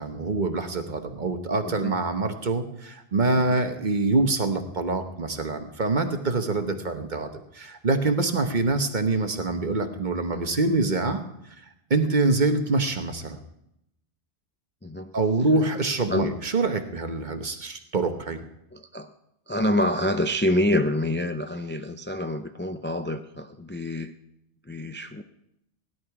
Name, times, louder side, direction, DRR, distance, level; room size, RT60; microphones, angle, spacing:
voice 1, 0.0-11.2 11.9-13.4 15.1-18.4, right 3 dB, 45° right, 7 dB, 1.2 m, -25 dB
voice 2, 18.7-19.1 19.5-24.1 24.7-25.2, left 1 dB, 20° left, 7 dB, 0.3 m, -27 dB
16.5 x 11.0 x 4.8 m, 0.81 s
omnidirectional pair, 1.1 m